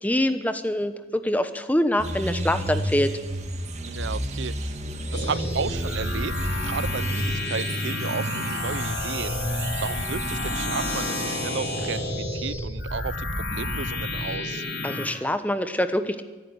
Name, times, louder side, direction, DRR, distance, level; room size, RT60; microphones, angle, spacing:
voice 1, 0.0-3.2 14.8-16.2, left 1 dB, 10° left, 10 dB, 1.0 m, -25 dB
sound 1, 2.0-12.0, right 1 dB, 35° right, 1.9 m, -32 dB
sound 2, 3.2-10.3, right 5 dB, 55° right, 2.3 m, -43 dB
voice 2, 3.9-4.8 5.1-6.3 6.6-14.6, right 5 dB, 80° right, 17 dB, 0.7 m, -33 dB
sound 3, 5.1-15.1, left 1 dB, 60° left, 3.8 m, -30 dB
24.0 x 11.0 x 9.7 m, 1.3 s
head